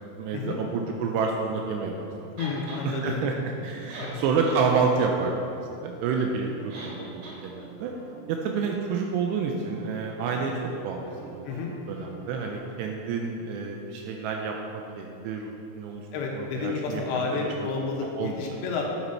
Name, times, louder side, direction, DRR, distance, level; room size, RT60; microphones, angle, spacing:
voice 1, 0.0-2.3 2.7-3.3 3.6-5.4 5.8-7.9 8.3-11.5 11.9-17.7 18.1-18.5, right 5 dB, 90° right, 1 dB, 2.4 m, -29 dB
sound 1, 2.3-12.6, right 2 dB, 35° right, 2.1 m, -48 dB
voice 2, 2.4-3.2 4.0-4.2 11.5-11.7 16.1-18.8, left 4 dB, 75° left, -1 dB, 2.9 m, -30 dB
sound 2, 2.4-2.8 3.6-3.7 3.9-4.6 5.0-5.1 6.7-7.0 7.2-7.4, right 2 dB, 70° right, 4.0 m, -40 dB
9.2 x 7.9 x 4.3 m, 2.6 s
omnidirectional pair, 5.6 m